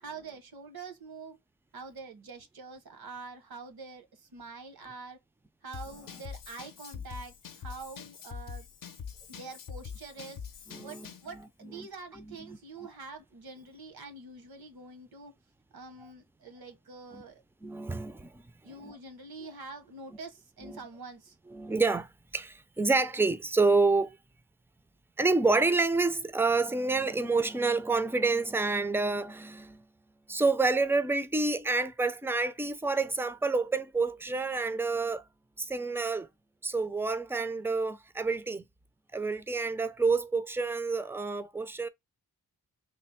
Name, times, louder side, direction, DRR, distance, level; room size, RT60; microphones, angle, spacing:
voice 1, 0.0-1.4 1.7-5.2 5.6-8.7 9.3-10.4 10.8-15.3 15.7-17.4 18.6-21.4, right 4 dB, 75° right, 1.0 m, -45 dB
Drum kit / Drum, 5.7-11.3, left 7 dB, 60° left, 0.6 m, -44 dB
voice 2, 10.7-11.1 11.3-11.9 12.1-12.6 17.1-17.2 17.6-18.4 18.8-19.0 20.6-20.8 21.5-22.1 22.3-24.2 25.2-29.9 30.3-35.2 35.6-36.3 36.6-38.6 39.1-41.9, right 3 dB, 5° right, 0.4 m, -28 dB
3.3 x 2.0 x 4.2 m
wide cardioid pair, 80°, 37 cm